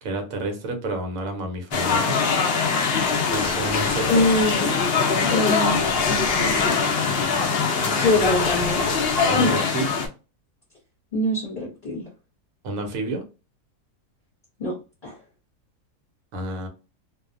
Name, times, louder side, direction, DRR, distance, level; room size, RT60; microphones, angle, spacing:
voice 1, 0.0-2.3 3.3-4.3 7.8-8.3 9.3-9.9 12.6-13.2 16.3-16.7, right 2 dB, 65° right, 1.0 m, -30 dB
sound 1, 1.7-10.1, left 5 dB, 90° left, 0.5 m, -22 dB
voice 2, 4.1-4.8 5.3-6.7 8.0-8.8 9.4-9.6 11.1-12.1 14.6-14.8 15.0-15.2, left 2 dB, 40° left, 0.9 m, -24 dB
2.6 x 2.1 x 2.5 m
omnidirectional pair, 1.7 m